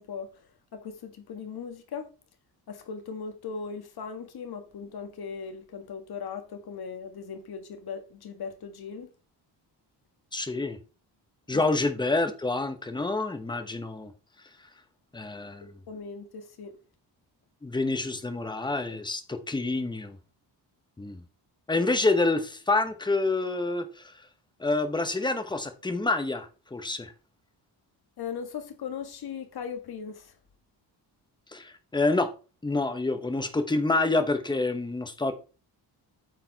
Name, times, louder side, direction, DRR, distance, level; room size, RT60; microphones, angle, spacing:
voice 1, 0.0-2.1 2.7-9.1 11.5-11.6 15.6-16.7 28.2-30.3, left 6 dB, 60° left, 1.7 m, -38 dB
voice 2, 10.3-10.8 11.5-14.1 15.1-15.7 17.6-20.2 21.0-21.2 21.7-24.1 24.6-27.1 31.5-32.3 32.6-35.3, left 2 dB, 10° left, 1.0 m, -27 dB
9.1 x 6.8 x 4.0 m
wide cardioid pair, 165°, 43 cm